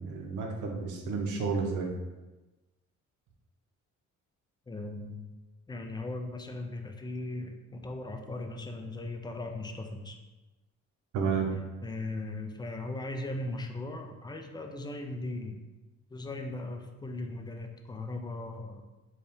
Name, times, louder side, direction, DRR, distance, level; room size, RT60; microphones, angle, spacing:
voice 1, 0.0-1.9 11.1-11.5, right 5 dB, 80° right, 1 dB, 0.6 m, -31 dB
voice 2, 4.7-5.3 5.7-10.2 11.8-15.6 16.1-18.8, left 2 dB, 15° left, 4 dB, 0.4 m, -38 dB
3.9 x 2.3 x 3.4 m, 1.1 s
cardioid pair, 90°, 30 cm